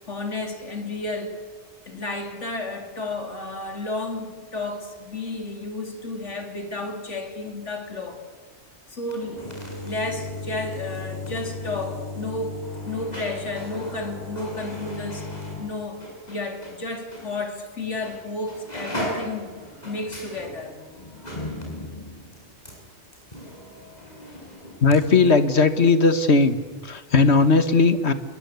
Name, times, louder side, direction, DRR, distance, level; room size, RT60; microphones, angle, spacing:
voice 1, 0.1-1.4 1.9-8.2 8.9-9.4 9.8-15.3 15.6-19.5 19.8-20.8 23.5-23.6, left 2 dB, 90° left, 3.5 m, -32 dB
sound 1, 9.0-16.8 17.1-17.3 18.0-18.2 18.5-25.0 25.2-25.3, left 1 dB, 35° left, 7.2 m, -36 dB
voice 2, 24.8-26.6 26.9-28.1, left 4 dB, 65° left, 1.9 m, -17 dB
28.5 x 22.5 x 8.3 m
omnidirectional pair, 1.2 m